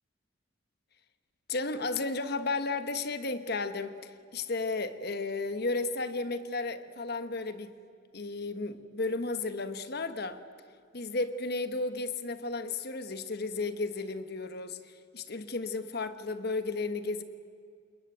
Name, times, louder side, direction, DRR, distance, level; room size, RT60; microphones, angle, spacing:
voice 1, 1.5-7.7 8.1-10.4 10.9-17.2, left 3 dB, 55° left, 1.3 m, -33 dB
28.0 x 21.5 x 9.2 m
head